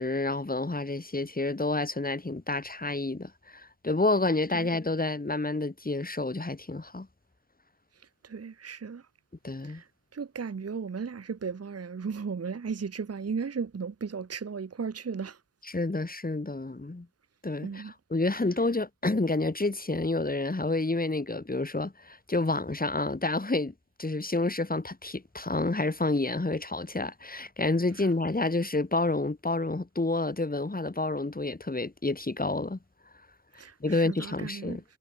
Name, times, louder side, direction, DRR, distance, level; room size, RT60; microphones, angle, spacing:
voice 1, 0.0-7.1 9.4-9.8 15.6-17.1 17.4-23.7 24.0-32.8 33.8-34.8, left 2 dB, 25° left, 1.3 m, -29 dB
voice 2, 8.3-9.0 9.7-9.8 10.1-15.4 17.6-17.9 33.6-34.8, right 5 dB, 50° right, 0.7 m, -35 dB
wide cardioid pair, 45°, 32 cm